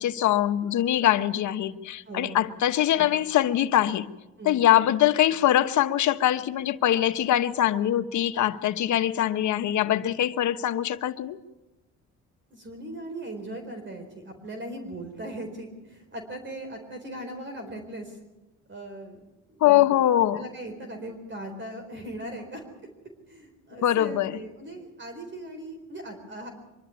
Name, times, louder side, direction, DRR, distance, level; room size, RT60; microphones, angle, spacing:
voice 1, 0.0-4.1 4.4-11.4 19.6-20.4 23.8-24.4, left 12 dB, 75° left, 1.1 m, -23 dB
voice 2, 2.1-2.4 4.4-4.6 12.5-18.2 18.7-19.2 19.5-19.7 20.3-22.6 23.3-26.5, right 1 dB, 40° right, 4.3 m, -39 dB
24.5 x 12.0 x 9.6 m
cardioid pair, 90°, 30 cm